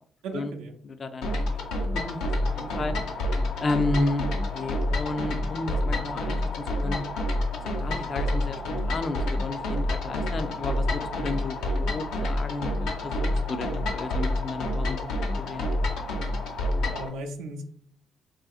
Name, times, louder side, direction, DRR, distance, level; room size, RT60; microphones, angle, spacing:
voice 1, 0.2-0.7 16.9-17.6, right 2 dB, 90° right, 2 dB, 0.5 m, -36 dB
voice 2, 0.8-1.4 1.9-3.0 3.6-4.3 4.5-7.0 7.8-15.1 15.4-15.7, left 2 dB, 45° left, 9 dB, 0.4 m, -32 dB
sound 1, 1.2-17.1, left 1 dB, 80° left, 0.7 m, -28 dB
3.8 x 2.7 x 2.4 m, 0.64 s
supercardioid pair, 75°, 0 cm